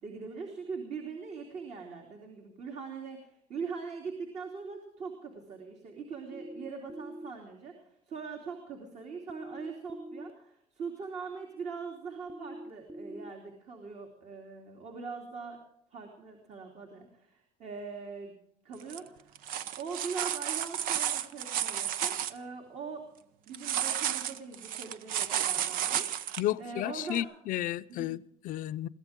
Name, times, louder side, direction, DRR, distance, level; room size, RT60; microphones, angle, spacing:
voice 1, 0.0-15.6 15.9-18.3 18.6-19.4 19.8-23.0 23.5-27.3 27.9-28.2, right 5 dB, 55° right, 3.2 m, -42 dB
sound 1, 6.3-7.3 9.3-10.3 12.3-13.3, right 1 dB, 15° right, 0.5 m, -43 dB
sound 2, 18.8-19.0 19.4-22.3 23.5-26.4 27.2-27.3, right 10 dB, 90° right, 0.9 m, -32 dB
voice 2, 26.4-28.9, left 14 dB, 70° left, 0.6 m, -33 dB
22.0 x 16.5 x 3.7 m
cardioid pair, 145°, 14 cm